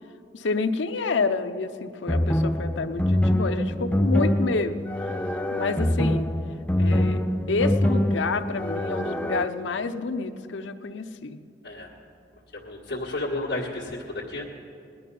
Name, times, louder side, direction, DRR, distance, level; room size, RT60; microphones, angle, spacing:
voice 1, 0.3-4.8 5.5-6.3 6.8-11.4, left 4 dB, 85° left, 8 dB, 0.7 m, -28 dB
sound 1, 2.1-9.5, left 1 dB, 10° left, 0.4 m, -24 dB
voice 2, 12.5-14.5, left 2 dB, 65° left, -5 dB, 1.7 m, -32 dB
18.5 x 11.0 x 5.4 m, 2.6 s
head